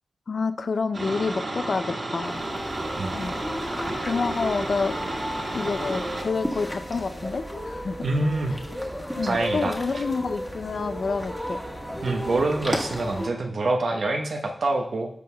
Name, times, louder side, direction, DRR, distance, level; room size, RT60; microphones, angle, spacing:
voice 1, 0.3-2.4 3.1-3.4 4.0-5.0 5.5-8.0 9.2-11.6, left 4 dB, 65° left, 12 dB, 0.4 m, -28 dB
sound 1, 0.9-6.2, right 1 dB, 50° right, 1.8 m, -32 dB
sound 2, 2.2-13.3, equal, 5° left, 1.4 m, -34 dB
voice 2, 8.0-8.5 9.2-10.0 12.0-15.1, right 2 dB, 70° right, 3 dB, 0.8 m, -26 dB
14.0 x 5.4 x 2.2 m, 0.67 s
wide cardioid pair, 75°, 0 cm